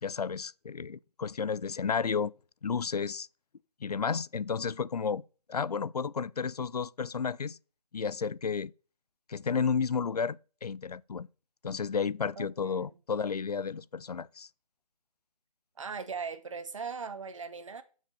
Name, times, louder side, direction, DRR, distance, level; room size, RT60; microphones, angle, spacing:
voice 1, 0.0-2.3 2.6-3.3 3.8-5.2 5.5-7.6 7.9-8.7 9.3-11.3 11.6-14.5, left 6 dB, 75° left, 0.5 m, -32 dB
voice 2, 12.4-13.0 15.8-17.8, right 5 dB, 50° right, 1.2 m, -39 dB
12.0 x 6.3 x 6.7 m
figure-of-eight pair, 165°, 20 cm